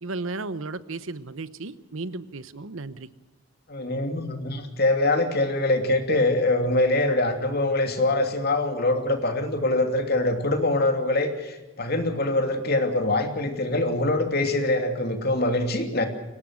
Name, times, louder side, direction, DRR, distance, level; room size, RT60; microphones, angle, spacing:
voice 1, 0.0-3.1, right 3 dB, 70° right, 15 dB, 0.9 m, -34 dB
voice 2, 3.7-16.1, left 2 dB, 50° left, 5 dB, 2.9 m, -24 dB
23.5 x 18.5 x 6.5 m, 1.1 s
head